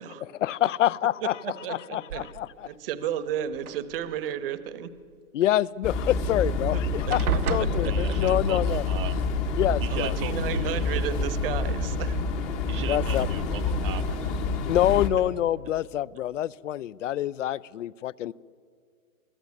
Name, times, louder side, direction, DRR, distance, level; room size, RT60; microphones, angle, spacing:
voice 1, 0.4-1.4 1.7-2.5 5.3-8.8 9.6-10.1 12.9-13.3 14.7-18.3, left 12 dB, 60° left, 21 dB, 0.6 m, -26 dB
voice 2, 1.4-2.3 2.6-4.9 6.7-7.1 7.5-7.9 9.9-12.2, right 10 dB, 40° right, 13 dB, 1.0 m, -33 dB
sound 1, 2.1-2.7 3.5-4.4 6.2-6.3 6.6-6.8 7.1-8.5 9.7-9.8 10.3-10.7, right 9 dB, 80° right, 1.1 m, -33 dB
sound 2, 5.8-15.1, left 3 dB, 15° left, 0.8 m, -27 dB
voice 3, 7.8-9.2 9.8-11.1 12.6-14.5, right 10 dB, 20° right, 10 dB, 0.7 m, -38 dB
24.0 x 14.5 x 9.6 m, 2.2 s
hypercardioid pair, 155°, 43 cm